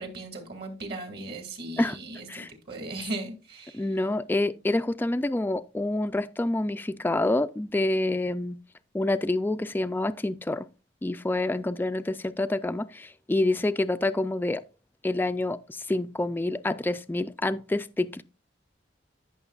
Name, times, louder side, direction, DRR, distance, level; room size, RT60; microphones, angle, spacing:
voice 1, 0.0-3.8, right 2 dB, 60° right, 2.2 m, -37 dB
voice 2, 3.7-8.6 8.9-10.7 11.0-14.6 15.0-18.2, left 2 dB, 10° left, 0.3 m, -27 dB
14.0 x 6.3 x 2.4 m
head